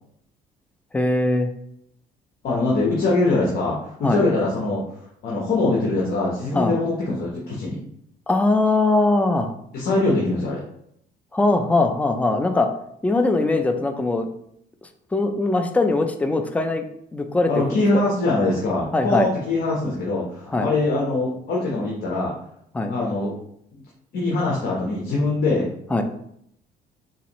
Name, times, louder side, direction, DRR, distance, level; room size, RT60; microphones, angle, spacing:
voice 1, 0.9-1.5 4.0-4.2 6.5-6.7 8.3-9.5 11.3-12.7 13.0-14.3 15.1-16.8 17.1-17.6 17.9-18.0 18.9-19.3 20.5-20.7 22.7-22.9 25.9-26.0, left 2 dB, 10° left, 6 dB, 0.4 m, -21 dB
voice 2, 2.4-7.8 9.7-10.6 17.5-22.3 22.9-23.3 23.7-23.8 24.1-25.7, left 2 dB, 60° left, -3 dB, 0.9 m, -23 dB
4.0 x 2.6 x 3.0 m, 0.72 s
cardioid pair, 110°, 17 cm